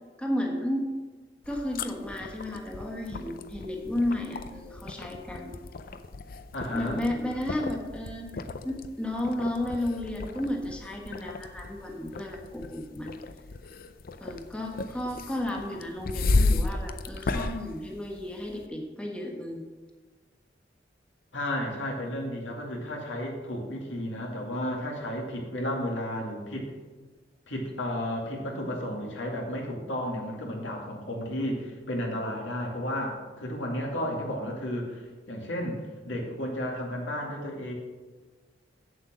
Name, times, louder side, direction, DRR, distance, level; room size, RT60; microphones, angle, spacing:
voice 1, 0.2-0.9 1.5-5.6 6.7-8.3 8.6-13.2 14.2-19.6, left 1 dB, 5° left, -1 dB, 1.4 m, -33 dB
sound 1, 1.4-18.6, left 3 dB, 50° left, 0.5 m, -34 dB
voice 2, 6.5-7.0 21.3-26.7 27.5-37.7, left 1 dB, 85° left, -1 dB, 2.3 m, -33 dB
8.2 x 7.7 x 6.2 m, 1.3 s
head